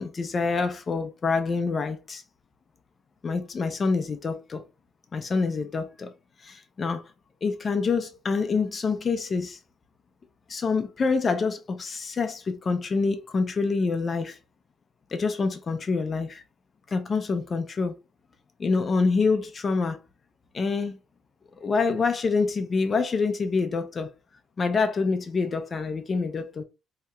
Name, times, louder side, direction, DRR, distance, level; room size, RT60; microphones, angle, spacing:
voice 1, 0.0-2.2 3.2-4.6 5.1-6.1 6.4-7.1 7.4-9.6 10.5-14.4 15.1-16.4 16.9-17.9 18.6-20.0 20.5-21.0 21.6-24.1 24.6-26.6, left 4 dB, 30° left, 0.4 m, -26 dB
2.8 x 2.3 x 4.1 m
cardioid pair, 155°, 0 cm